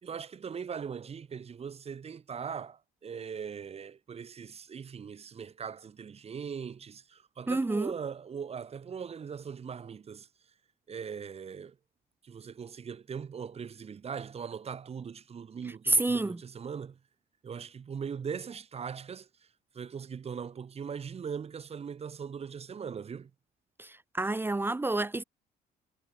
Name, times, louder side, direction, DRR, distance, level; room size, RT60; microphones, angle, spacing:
voice 1, 0.0-10.3 10.9-11.8 12.2-17.0 17.4-19.3 19.7-23.3, right 6 dB, 35° right, 3.8 m, -40 dB
voice 2, 7.5-7.9 15.9-16.4 23.8-25.2, right 2 dB, 10° right, 1.2 m, -29 dB
cardioid pair, 110°, 17 cm